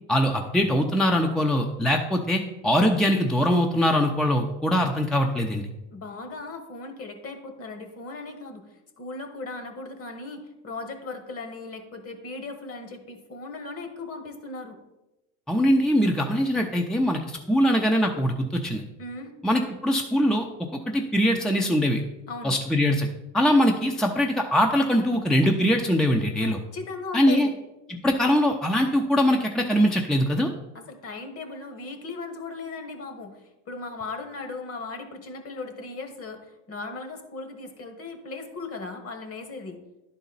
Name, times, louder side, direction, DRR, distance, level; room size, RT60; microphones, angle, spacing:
voice 1, 0.1-5.7 15.5-18.8 19.4-22.0 22.4-23.1 23.3-26.6 27.1-27.5 27.9-30.5, equal, ahead, 2 dB, 0.6 m, -22 dB
voice 2, 5.9-8.6 9.0-14.8 19.0-19.3 22.3-22.6 26.4-27.5 30.7-39.8, left 3 dB, 40° left, 7 dB, 1.4 m, -37 dB
10.5 x 4.2 x 4.0 m, 0.98 s
hypercardioid pair, 80°, 36 cm